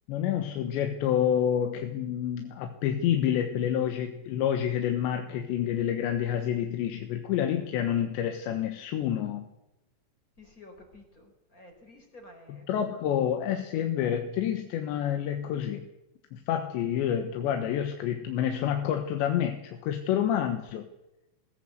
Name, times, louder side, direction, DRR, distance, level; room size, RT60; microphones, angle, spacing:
voice 1, 0.1-9.5 12.7-15.9 16.3-20.9, left 10 dB, 80° left, 6 dB, 3.5 m, -28 dB
voice 2, 10.4-12.6, left 2 dB, 20° left, 3 dB, 4.7 m, -52 dB
20.5 x 16.5 x 8.1 m, 0.90 s
omnidirectional pair, 5.2 m